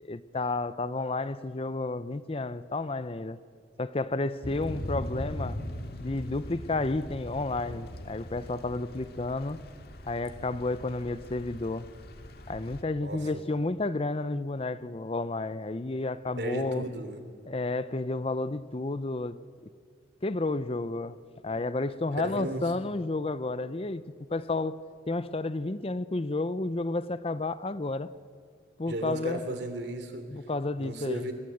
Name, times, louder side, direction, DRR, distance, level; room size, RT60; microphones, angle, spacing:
voice 1, 0.0-3.4 3.8-5.6 6.0-9.6 10.0-11.9 12.5-16.9 17.5-19.4 20.2-21.2 21.4-24.0 24.3-24.8 25.1-28.1 28.8-29.4 30.3-31.3, left 2 dB, 30° left, 0.6 m, -31 dB
Thunder / Rain, 4.4-12.8, left 1 dB, 60° left, 1.9 m, -40 dB
voice 2, 16.4-17.2 22.2-22.7 28.9-30.2 30.8-31.3, right 1 dB, 65° right, 3.2 m, -35 dB
26.0 x 21.5 x 7.9 m
head